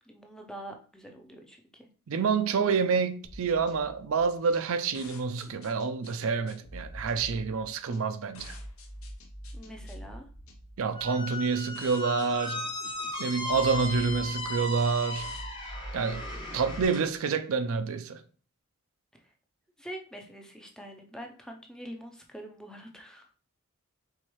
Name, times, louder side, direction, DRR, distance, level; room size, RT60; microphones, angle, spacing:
voice 1, 0.1-1.9 9.5-10.3 19.8-23.3, right 1 dB, 5° left, 0.4 m, -45 dB
voice 2, 2.1-8.6 10.8-12.6 13.2-15.3 15.9-16.2 16.5-18.2, right 5 dB, 70° right, 0.4 m, -28 dB
sound 1, 3.2-16.8, equal, 75° left, 0.8 m, -46 dB
Squeak, 10.9-17.0, left 2 dB, 20° left, 0.8 m, -36 dB
4.6 x 3.5 x 3.0 m
head